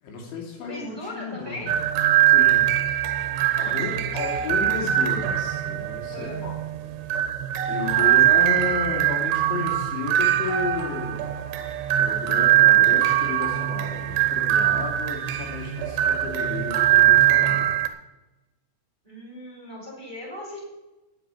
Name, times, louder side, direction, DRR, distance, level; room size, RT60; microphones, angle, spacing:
voice 1, 0.0-1.6 2.3-2.7 3.6-6.6 7.7-11.2 12.0-17.7, left 4 dB, 75° left, -1 dB, 4.9 m, -33 dB
voice 2, 0.7-1.7 3.5-4.6 6.1-6.5 7.9-8.8 19.0-20.6, left 1 dB, 10° right, -3 dB, 3.0 m, -39 dB
sound 1, 1.7-17.9, right 12 dB, 75° right, 2.8 m, -22 dB
9.2 x 8.7 x 9.0 m, 1.0 s
omnidirectional pair, 5.5 m